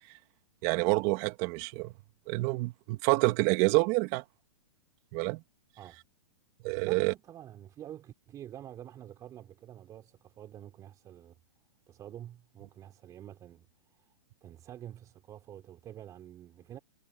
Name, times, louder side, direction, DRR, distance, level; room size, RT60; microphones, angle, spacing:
voice 1, 0.6-1.9 2.3-4.2 5.1-5.4 6.6-7.1, right 25 dB, 40° right, 2.0 m, -27 dB
voice 2, 6.8-11.4 11.9-14.1 14.4-16.8, right 11 dB, 25° right, 4.6 m, -48 dB
hypercardioid pair, 140°, 14 cm